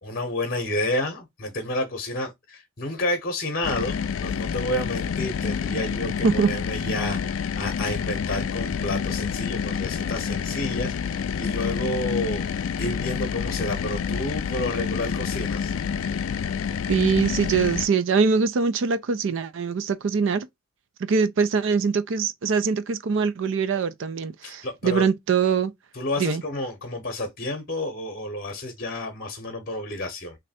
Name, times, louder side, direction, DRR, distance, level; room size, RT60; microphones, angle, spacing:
voice 1, 0.0-15.7 24.4-25.1 25.9-30.4, left 1 dB, 40° left, 0.8 m, -30 dB
sound 1, 3.6-17.9, left 7 dB, 70° left, 0.3 m, -28 dB
voice 2, 16.9-20.5 21.1-25.7 26.2-26.4, right 5 dB, 60° right, 0.4 m, -23 dB
3.1 x 2.7 x 4.1 m
head